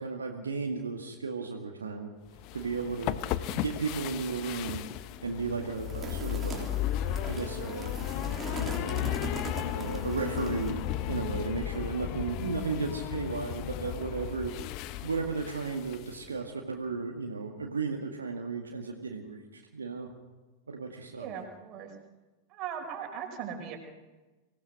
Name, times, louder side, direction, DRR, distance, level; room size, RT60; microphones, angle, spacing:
voice 1, 0.0-2.1 2.5-3.2 3.5-4.8 5.2-6.7 7.3-7.9 8.2-9.1 9.7-14.5 15.0-20.1 20.7-21.3, right 4 dB, 75° right, 1 dB, 2.1 m, -34 dB
sound 1, 2.4-16.2, left 12 dB, 40° left, 1.0 m, -35 dB
sound 2, 5.8-10.9, right 5 dB, 20° right, 3.7 m, -42 dB
voice 2, 21.1-21.9 22.5-23.8, right 8 dB, 35° right, 3 dB, 4.9 m, -39 dB
25.0 x 18.0 x 6.2 m, 1.2 s
figure-of-eight pair, 90°, 0 cm